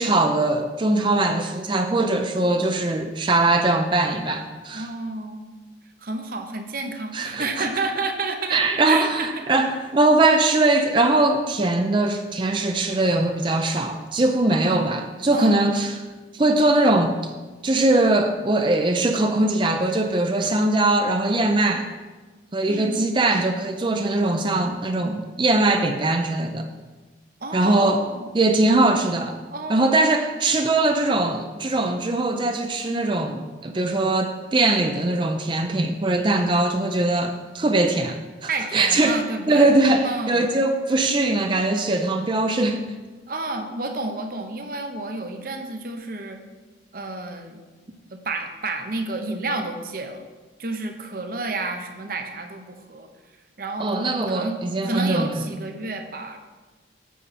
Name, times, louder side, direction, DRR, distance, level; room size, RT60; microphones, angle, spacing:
voice 1, 0.0-4.9 7.1-7.7 8.5-16.0 16.3-17.3 17.6-21.9 22.5-26.7 27.5-28.0 28.3-29.4 29.7-39.2 39.5-42.8 53.8-55.4, right 2 dB, 25° right, 6 dB, 0.4 m, -21 dB
voice 2, 4.7-5.5 6.0-9.4 14.5-14.9 15.3-15.8 22.7-23.1 27.4-28.3 28.7-29.0 29.5-30.2 38.5-39.7 40.0-40.5 43.3-46.4 46.9-47.6 48.1-50.2 50.6-53.1 53.6-54.6 54.8-56.4, right 3 dB, 50° right, 6 dB, 0.8 m, -30 dB
8.3 x 7.2 x 4.2 m, 1.3 s
head